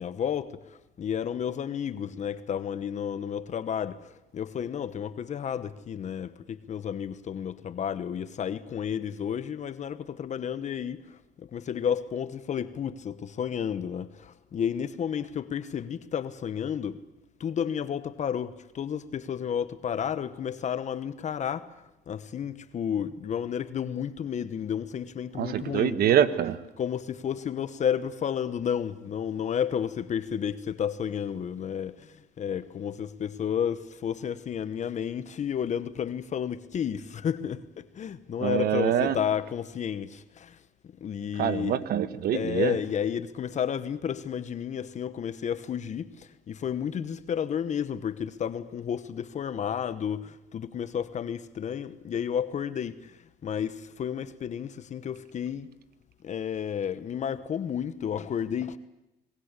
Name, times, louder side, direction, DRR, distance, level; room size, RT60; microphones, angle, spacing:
voice 1, 0.0-17.0 17.4-26.0 26.8-40.6 41.0-41.8 42.3-55.7 56.2-58.8, left 8 dB, 45° left, 1.1 m, -32 dB
voice 2, 25.4-26.6 38.4-39.1 41.4-42.7, right 10 dB, 65° right, 1.5 m, -25 dB
26.5 x 20.0 x 8.2 m
cardioid pair, 110°, 17 cm